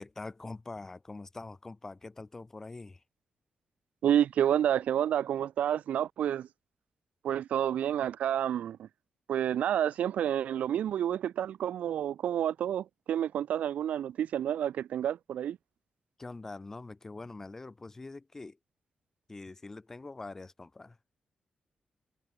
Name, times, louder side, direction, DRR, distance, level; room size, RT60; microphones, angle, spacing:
voice 1, 0.0-3.0 16.2-18.6 19.3-21.0, left 3 dB, 20° left, 2.0 m, -44 dB
voice 2, 4.0-6.5 7.2-8.9 9.3-15.6, right 10 dB, 90° right, 0.6 m, -29 dB
wide cardioid pair, 170°, 2 cm